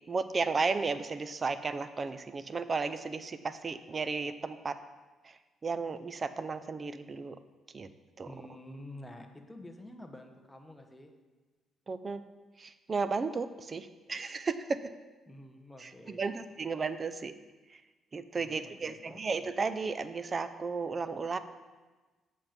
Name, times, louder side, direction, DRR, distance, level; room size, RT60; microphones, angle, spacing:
voice 1, 0.1-4.7 5.2-7.4 7.7-7.9 8.2-8.3 11.9-12.2 12.6-14.9 15.8-17.3 18.1-21.4, right 4 dB, 35° right, 12 dB, 0.5 m, -34 dB
voice 2, 8.3-11.1 15.2-16.2 18.4-19.2, left 1 dB, 10° left, 4 dB, 1.1 m, -49 dB
8.2 x 7.3 x 5.2 m, 1.3 s
cardioid pair, 90°, 0 cm